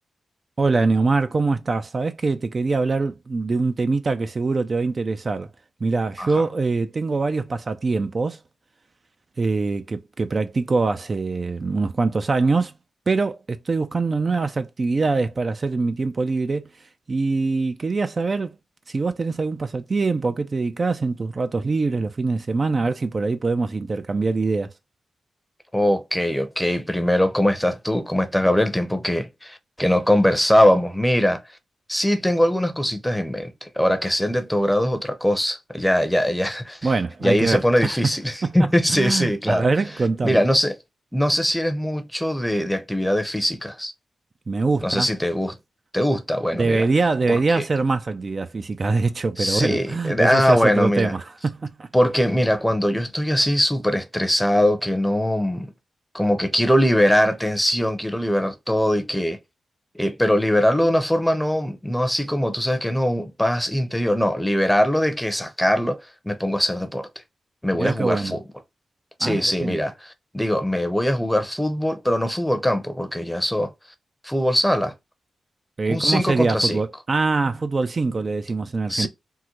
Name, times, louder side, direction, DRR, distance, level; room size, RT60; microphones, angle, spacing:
voice 1, 0.6-5.5 5.8-8.4 9.4-12.7 13.1-18.6 18.9-24.7 36.8-38.2 38.4-38.7 39.0-40.4 44.5-45.1 46.5-51.9 67.8-68.4 69.2-69.8 75.8-79.1, right 3 dB, 45° right, 0.4 m, -23 dB
voice 2, 25.7-31.4 31.9-36.8 37.2-39.7 40.2-40.8 41.1-43.9 44.8-45.6 45.9-46.9 47.3-47.6 49.4-51.1 51.9-55.7 56.1-59.4 59.9-67.1 67.6-68.4 69.2-69.9 70.3-73.7 74.2-74.9 75.9-76.8 78.9-79.1, equal, 5° left, 0.6 m, -21 dB
3.7 x 2.1 x 2.9 m
cardioid pair, 60°, 0 cm